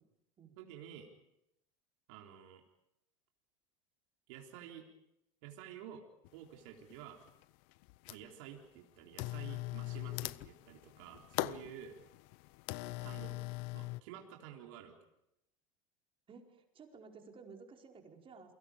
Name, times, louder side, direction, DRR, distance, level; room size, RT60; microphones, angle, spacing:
voice 1, 0.6-1.1 2.1-2.6 4.3-4.9 5.4-6.0 6.3-7.2 8.1-12.0 13.0-13.3 13.7-14.9, right 10 dB, 65° right, 1 dB, 3.7 m, -51 dB
sound 1, 6.2-6.3 6.9-7.4 7.7-8.4 9.1-14.0, left 21 dB, 60° left, 0.8 m, -41 dB
voice 2, 12.8-13.6 16.3-18.5, right 5 dB, 30° right, 2 dB, 4.9 m, -55 dB
29.0 x 24.5 x 5.1 m, 0.84 s
hypercardioid pair, 90°, 17 cm